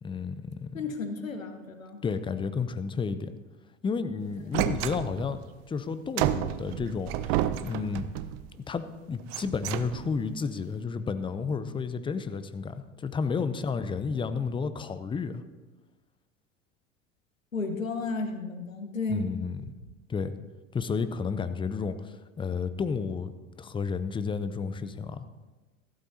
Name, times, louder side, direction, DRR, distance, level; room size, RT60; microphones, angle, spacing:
voice 1, 0.0-0.8 2.0-3.3 3.8-5.4 5.7-8.1 8.5-15.4 19.1-19.7 20.1-20.3 20.7-23.3 23.6-25.2, left 5 dB, 15° left, 12 dB, 0.6 m, -32 dB
voice 2, 0.7-2.0 17.5-19.3, left 3 dB, 90° left, 7 dB, 1.1 m, -33 dB
sound 1, 4.5-5.4 6.2-8.5 9.2-10.3, right 12 dB, 50° right, 0.6 m, -31 dB
14.5 x 12.5 x 2.7 m, 1.2 s
figure-of-eight pair, 80°, 39 cm